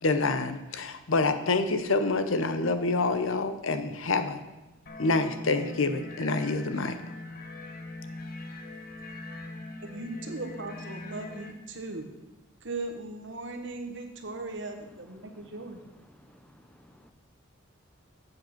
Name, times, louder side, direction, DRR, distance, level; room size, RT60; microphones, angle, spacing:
voice 1, 0.0-4.4 5.0-7.0, left 3 dB, 75° left, 10 dB, 0.8 m, -27 dB
sound 1, 4.9-11.5, left 2 dB, 45° left, 0.9 m, -42 dB
voice 2, 9.8-12.1 12.6-15.8, right 2 dB, 60° right, 4 dB, 1.3 m, -38 dB
voice 3, 15.0-17.1, equal, 5° left, 6 dB, 0.6 m, -57 dB
7.7 x 7.6 x 5.9 m, 1.1 s
head